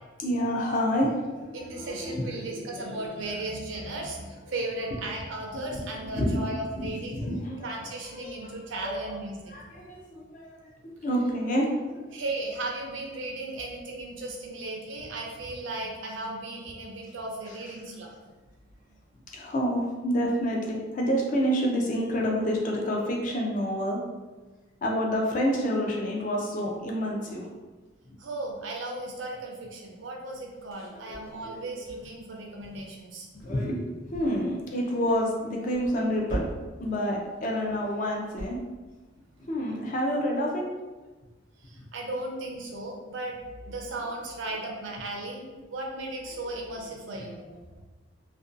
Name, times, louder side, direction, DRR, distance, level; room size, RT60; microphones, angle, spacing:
voice 1, 0.2-3.0 5.4-6.4 6.7-7.7 8.0-8.6 8.8-9.2 9.5-10.7 11.0-12.1 17.5-17.6 19.3-24.0 24.8-27.5 30.9-31.6 33.4-33.9 34.1-36.5 36.8-38.6 39.4-40.7, equal, 40° left, -1 dB, 0.4 m, -29 dB
voice 2, 1.5-7.2 7.6-9.6 12.1-18.3 28.2-33.3 41.6-43.4 43.6-47.4, right 2 dB, 70° right, 0 dB, 0.5 m, -36 dB
sound 1, 30.5-32.3 32.6-32.9 33.3-33.7 34.1-34.6 34.9-35.3 35.7-36.9 37.2-37.4 37.8-38.5, right 1 dB, 85° left, 0.7 m, -40 dB
2.5 x 2.2 x 2.4 m, 1.2 s
head